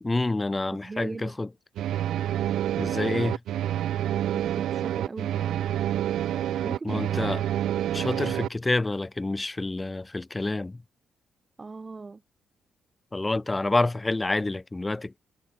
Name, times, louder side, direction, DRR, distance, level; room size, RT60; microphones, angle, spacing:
voice 1, 0.0-1.5 2.8-3.4 6.8-7.4 7.9-10.8 13.1-15.2, left 2 dB, 15° left, 0.7 m, -28 dB
voice 2, 0.7-1.4 4.3-5.9 6.6-7.4 11.6-12.2, right 3 dB, 25° right, 4.7 m, -39 dB
sound 1, 1.8-8.5, right 11 dB, 75° right, 0.6 m, -28 dB
cardioid pair, 90°, 0 cm